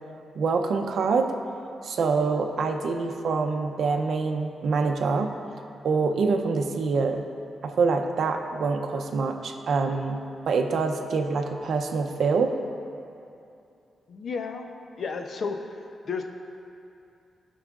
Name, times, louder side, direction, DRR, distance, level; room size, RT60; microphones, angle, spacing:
voice 1, 0.3-1.3 1.8-5.3 5.8-7.2 7.6-12.6, right 4 dB, 70° right, 5 dB, 0.6 m, -25 dB
voice 2, 14.1-14.7 15.0-15.6 16.1-16.2, left 5 dB, 60° left, 5 dB, 0.6 m, -31 dB
16.0 x 5.5 x 2.4 m, 2.6 s
wide cardioid pair, 125°, 0 cm